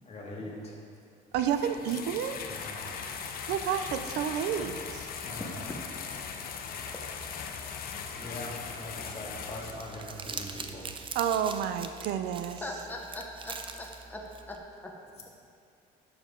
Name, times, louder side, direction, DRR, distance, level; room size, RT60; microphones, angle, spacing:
voice 1, 0.0-0.8 2.5-2.9 5.2-5.6 8.2-10.9, left 1 dB, 35° left, -4 dB, 2.2 m, -41 dB
sound 1, 1.3-9.7, left 6 dB, 60° left, 0.8 m, -39 dB
voice 2, 1.3-2.5 3.5-5.1 11.2-12.6, right 9 dB, 85° right, 10 dB, 0.5 m, -30 dB
Crumpling crinkling, 9.5-14.6, right 5 dB, 30° right, 0.6 m, -42 dB
voice 3, 12.6-14.6 14.8-14.9, left 1 dB, 10° left, 0 dB, 1.1 m, -41 dB
11.5 x 7.2 x 3.8 m, 2.4 s
cardioid pair, 110°, 17 cm